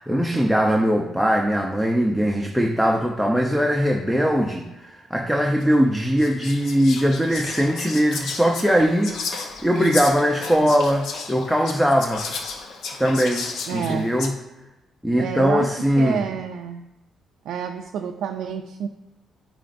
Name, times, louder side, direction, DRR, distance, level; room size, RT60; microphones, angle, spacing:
voice 1, 0.0-9.2 9.6-12.2 13.0-14.3 15.0-16.2, equal, ahead, 1 dB, 0.6 m, -21 dB
Whispering, 5.6-5.7 6.2-14.3, left 4 dB, 70° left, 0.8 m, -33 dB
voice 2, 13.7-14.1 15.2-16.9 17.4-18.9, right 8 dB, 80° right, 4 dB, 0.3 m, -29 dB
8.9 x 4.3 x 2.6 m, 1.0 s
cardioid pair, 90°, 0 cm